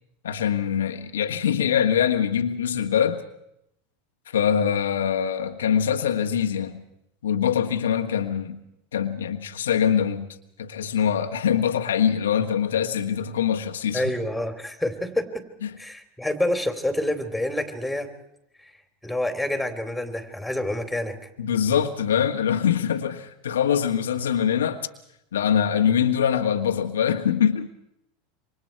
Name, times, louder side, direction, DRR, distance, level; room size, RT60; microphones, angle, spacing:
voice 1, 0.2-3.2 4.3-6.8 7.2-8.6 8.9-14.1 15.6-15.7 21.4-24.8 25.3-27.7, left 8 dB, 80° left, 1.5 m, -23 dB
voice 2, 13.9-15.5 15.8-18.1 19.0-21.2, left 1 dB, 5° left, 3.5 m, -27 dB
27.5 x 25.0 x 4.6 m
hypercardioid pair, 85°, 0 cm